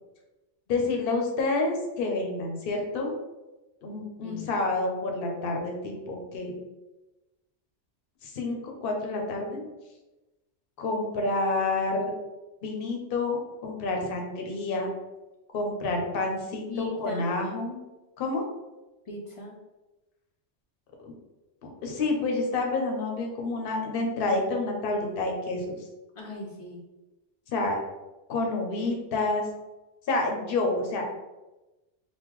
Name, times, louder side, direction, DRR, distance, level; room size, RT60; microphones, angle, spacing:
voice 1, 0.7-3.1 3.8-6.5 8.2-9.6 10.8-12.1 12.6-14.9 15.5-17.8 18.2-18.4 21.0-21.1 21.8-25.7 27.5-27.8 28.3-29.5 30.1-31.0, left 2 dB, 60° left, 1 dB, 0.8 m, -28 dB
voice 2, 16.7-17.3 19.1-19.6 26.2-26.8, left 3 dB, 45° left, -1 dB, 0.4 m, -38 dB
3.6 x 2.2 x 3.0 m, 1.1 s
omnidirectional pair, 1.1 m